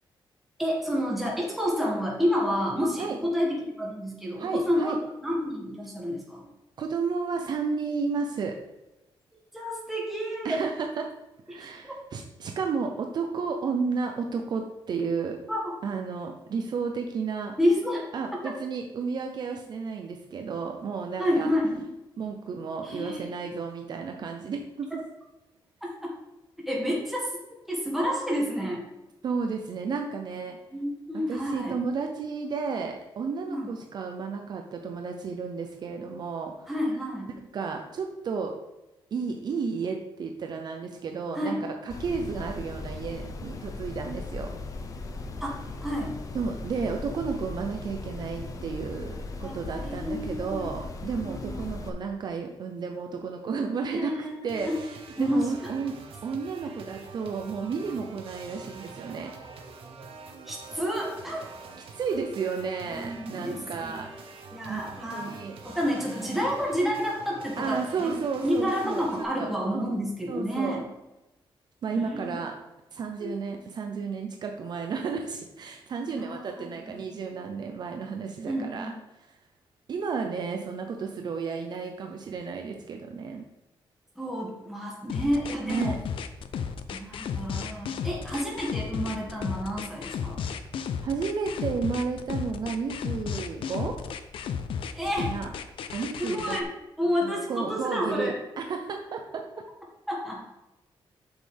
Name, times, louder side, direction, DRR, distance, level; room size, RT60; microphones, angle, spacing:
voice 1, 0.6-5.0 5.2-6.5 9.5-10.6 11.5-11.6 11.8-12.0 15.5-15.7 17.6-18.1 21.2-21.8 22.8-23.3 26.7-27.3 27.7-28.8 30.7-31.8 33.5-33.7 36.7-37.3 41.3-41.6 45.4-46.2 49.4-50.7 51.2-51.6 53.9-54.7 55.2-55.7 60.5-61.5 62.8-63.9 64.5-65.4 65.6-68.1 68.4-70.8 71.9-72.3 73.2-73.4 76.0-77.0 78.5-78.9 84.2-86.0 86.9-90.4 94.9-95.3 96.2-96.7 97.0-98.4 100.1-100.4, equal, ahead, -3 dB, 1.9 m, -29 dB
voice 2, 4.4-5.0 6.8-8.6 10.4-11.1 11.5-15.4 15.8-17.5 18.1-21.5 22.2-25.0 29.2-30.6 31.3-36.7 37.4-38.5 39.1-44.5 46.3-59.3 61.9-64.1 64.7-64.8 65.1-65.6 67.6-69.1 69.4-69.9 70.3-70.9 71.8-72.5 72.9-78.9 79.9-83.5 85.6-85.9 91.0-94.0 95.2-95.5 95.9-96.6 97.2-99.4, right 5 dB, 50° right, 3 dB, 0.7 m, -32 dB
sound 1, 41.9-51.9, left 3 dB, 40° left, 0.7 m, -38 dB
sound 2, 54.5-69.2, right 4 dB, 85° right, 1.1 m, -45 dB
sound 3, 85.1-96.6, left 7 dB, 70° left, 0.6 m, -33 dB
8.0 x 6.4 x 3.5 m, 0.96 s
wide cardioid pair, 170°, 9 cm